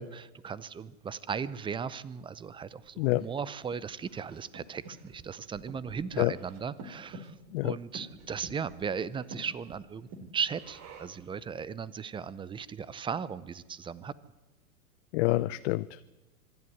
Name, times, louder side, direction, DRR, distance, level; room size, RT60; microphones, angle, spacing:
voice 1, 0.0-7.3 7.6-14.1, right 6 dB, 10° right, 19 dB, 0.6 m, -37 dB
Breathing, 2.8-11.3, right 2 dB, 40° right, 3.2 m, -49 dB
voice 2, 15.1-16.0, left 18 dB, 50° left, 13 dB, 0.6 m, -27 dB
25.0 x 11.0 x 9.6 m, 1.1 s
hypercardioid pair, 110°, 43 cm